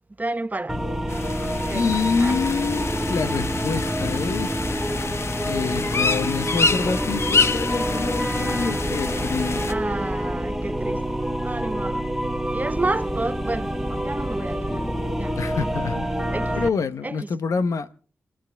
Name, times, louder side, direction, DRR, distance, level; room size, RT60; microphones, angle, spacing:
voice 1, 0.2-0.8 1.6-1.9 2.2-2.3 9.7-12.0 12.5-14.9 15.2-15.7 16.3-16.6 17.0-17.2, right 2 dB, 30° right, 1.1 m, -30 dB
sound 1, 0.7-16.7, equal, 5° right, 1.7 m, -27 dB
sound 2, 1.1-9.7, left 4 dB, 55° left, 1.1 m, -27 dB
voice 2, 1.7-4.6 5.4-9.7 15.4-16.1 16.5-17.9, left 5 dB, 80° left, 0.9 m, -26 dB
28.5 x 11.0 x 3.4 m
cardioid pair, 45°, 5 cm